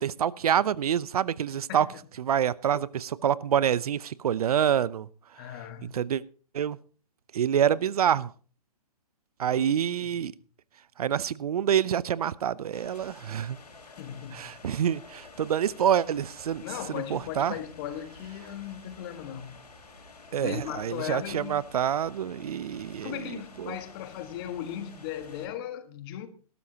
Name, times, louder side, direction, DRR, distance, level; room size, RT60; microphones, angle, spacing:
voice 1, 0.0-1.9 2.2-5.1 5.8-6.2 6.5-6.8 7.3-8.3 9.4-10.3 11.0-13.6 14.3-16.6 16.9-17.5 20.3-23.8, right 9 dB, 70° right, 0.6 m, -27 dB
voice 2, 5.3-6.1 9.5-9.7 10.0-10.2 13.9-14.6 16.6-19.6 20.4-21.6 23.0-26.3, left 11 dB, 40° left, 1.6 m, -37 dB
sound 1, 12.7-25.5, left 3 dB, 90° left, 4.2 m, -50 dB
19.0 x 12.5 x 2.9 m
hypercardioid pair, 140°, 20 cm